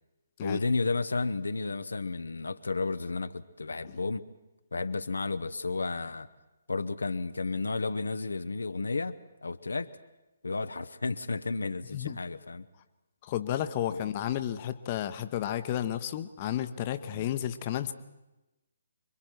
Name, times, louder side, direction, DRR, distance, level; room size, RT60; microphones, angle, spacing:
voice 1, 0.4-4.3 4.7-6.3 6.7-9.9 10.4-12.7 13.9-14.0 17.1-17.3, left 3 dB, 75° left, 11 dB, 0.8 m, -32 dB
voice 2, 13.2-17.9, left 11 dB, 35° left, 10 dB, 1.0 m, -32 dB
26.5 x 23.0 x 4.6 m, 1.0 s
figure-of-eight pair, 135°, 0 cm